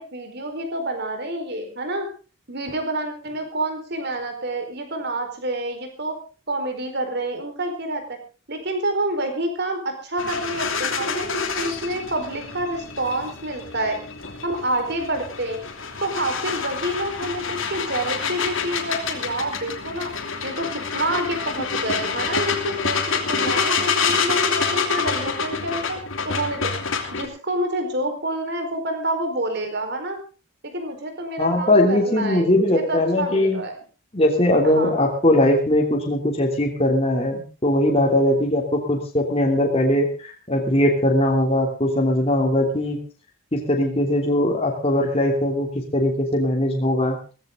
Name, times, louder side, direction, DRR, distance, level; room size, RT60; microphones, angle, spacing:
voice 1, 0.0-2.1 2.5-6.2 6.5-8.2 8.5-14.0 14.4-15.6 16.0-20.1 20.4-26.7 27.1-30.2 30.6-33.8 34.6-34.9, right 1 dB, 50° right, 6 dB, 4.5 m, -28 dB
sound 1, 10.2-27.3, left 5 dB, 65° left, 3.0 m, -27 dB
voice 2, 31.4-33.6 34.1-43.0 43.5-47.2, left 1 dB, 30° left, 1 dB, 3.1 m, -20 dB
17.5 x 15.0 x 3.8 m, 0.36 s
head